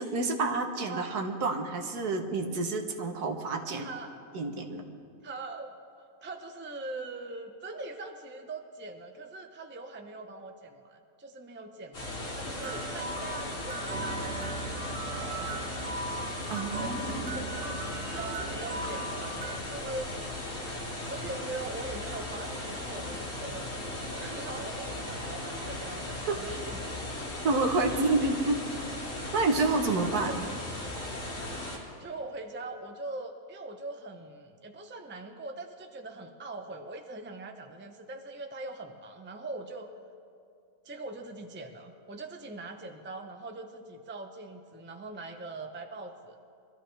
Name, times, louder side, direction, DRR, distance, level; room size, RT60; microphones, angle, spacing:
voice 1, 0.0-3.9 4.3-4.8 16.5-17.2 26.3-26.4 27.4-28.6 29.3-30.3, right 3 dB, 80° right, 4 dB, 1.7 m, -29 dB
voice 2, 3.7-4.2 5.2-5.7 6.2-15.9 16.8-17.8 18.1-20.1 21.1-27.0 30.0-30.6 32.0-39.9 40.8-46.4, right 2 dB, 10° right, 5 dB, 0.5 m, -42 dB
sound 1, 11.9-31.8, left 1 dB, 55° left, 3.2 m, -37 dB
sound 2, 12.6-19.6, right 2 dB, 55° right, 1.3 m, -38 dB
23.0 x 13.5 x 3.4 m, 2.3 s
omnidirectional pair, 1.6 m